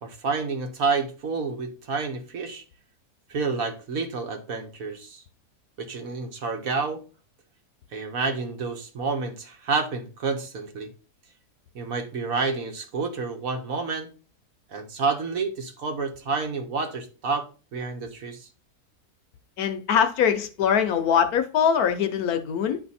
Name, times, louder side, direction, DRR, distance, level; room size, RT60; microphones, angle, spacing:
voice 1, 0.0-2.6 3.3-5.2 5.8-7.0 7.9-10.9 11.7-14.1 14.7-18.5, right 4 dB, 60° right, 1.5 m, -29 dB
voice 2, 19.6-22.8, left 7 dB, 70° left, 1.2 m, -22 dB
9.7 x 3.4 x 4.1 m
omnidirectional pair, 1.7 m